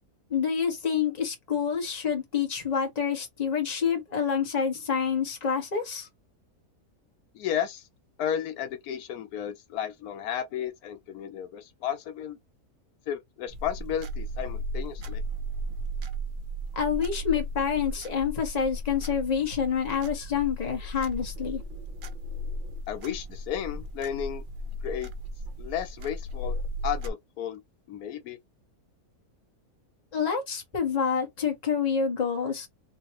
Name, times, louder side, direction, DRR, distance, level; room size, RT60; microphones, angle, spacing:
voice 1, 0.3-6.1 16.7-21.6 30.1-32.7, left 7 dB, 30° left, 1.2 m, -27 dB
voice 2, 7.3-7.9 8.2-12.4 13.1-15.2 22.9-24.4 24.8-25.1 25.6-26.6 26.8-27.6 27.9-28.4, left 9 dB, 80° left, 1.1 m, -33 dB
sound 1, 13.5-27.1, equal, 65° right, 0.5 m, -35 dB
3.3 x 3.0 x 2.9 m
omnidirectional pair, 1.6 m